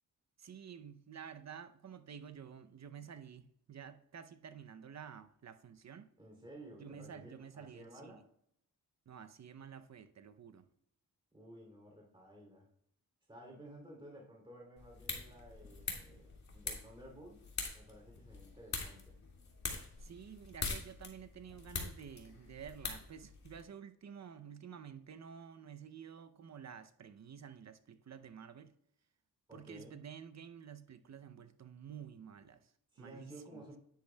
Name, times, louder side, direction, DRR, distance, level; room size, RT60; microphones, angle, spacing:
voice 1, 0.4-6.1 6.8-8.2 9.1-10.7 20.0-28.7 29.5-32.7 33.0-33.6, right 7 dB, 50° right, 0.6 m, -51 dB
voice 2, 6.2-8.3 11.3-12.7 13.3-19.2 29.5-30.0 32.9-33.8, right 1 dB, 15° right, 2.8 m, -54 dB
sound 1, 14.8-23.6, left 4 dB, 50° left, 2.0 m, -44 dB
10.0 x 8.0 x 2.2 m
cardioid pair, 80°, 36 cm